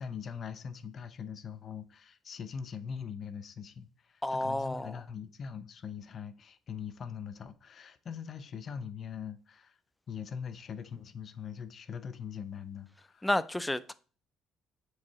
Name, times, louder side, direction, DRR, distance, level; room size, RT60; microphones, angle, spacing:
voice 1, 0.0-9.8 10.1-13.3, left 7 dB, 40° left, 0.7 m, -42 dB
voice 2, 4.2-4.9 13.2-13.9, left 1 dB, 5° left, 0.4 m, -31 dB
7.3 x 4.8 x 4.1 m
cardioid pair, 130°, 0 cm